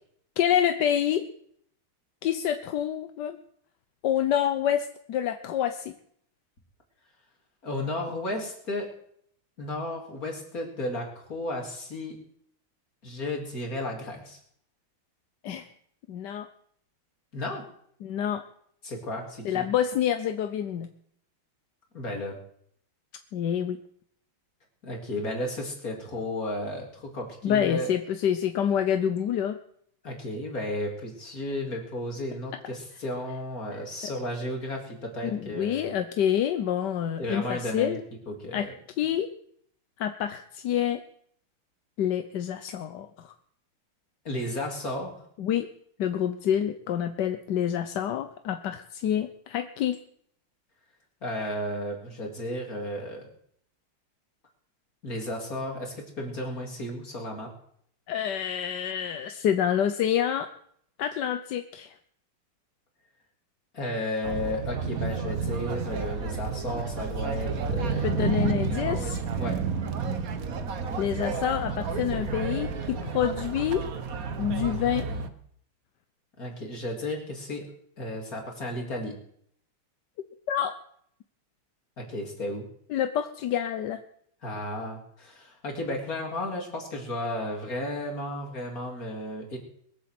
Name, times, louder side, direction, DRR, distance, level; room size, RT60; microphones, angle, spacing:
voice 1, 0.4-1.2 2.2-3.4 4.0-5.9 15.4-15.7 16.1-16.5 18.0-18.4 19.4-20.9 23.3-23.8 27.4-29.6 33.7-33.8 35.2-38.0 38.5-38.7 39.0-39.3 40.0-41.0 42.0-43.3 45.4-45.7 46.0-50.0 58.1-60.5 61.0-61.9 68.0-69.2 71.0-73.8 74.4-75.1 80.5-80.8 82.9-84.0, left 9 dB, 60° left, 9 dB, 1.3 m, -27 dB
voice 2, 7.6-8.9 9.6-12.2 13.0-14.4 17.3-17.7 18.8-19.6 21.9-22.4 24.8-27.9 30.0-35.9 37.2-38.0 38.3-38.7 44.3-45.1 51.2-53.2 55.0-57.5 63.7-68.1 69.4-69.6 76.4-77.7 78.0-79.1 82.0-82.6 84.4-89.6, left 1 dB, 40° left, 1 dB, 3.9 m, -33 dB
sound 1, 64.2-75.3, right 5 dB, 50° right, 1.3 m, -31 dB
22.0 x 8.3 x 7.7 m, 0.67 s
omnidirectional pair, 2.4 m